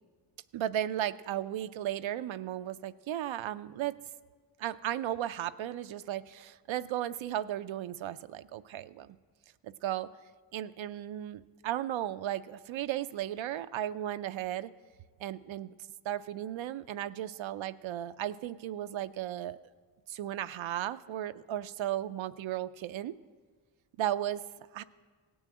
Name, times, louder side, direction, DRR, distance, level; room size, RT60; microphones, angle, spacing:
voice 1, 0.5-4.0 4.6-9.2 9.6-10.1 10.5-14.7 15.2-15.7 16.0-19.6 20.1-23.2 24.0-24.4 24.7-24.8, right 12 dB, 70° right, 12 dB, 0.5 m, -35 dB
17.0 x 6.3 x 7.7 m, 1.5 s
cardioid pair, 50°, 48 cm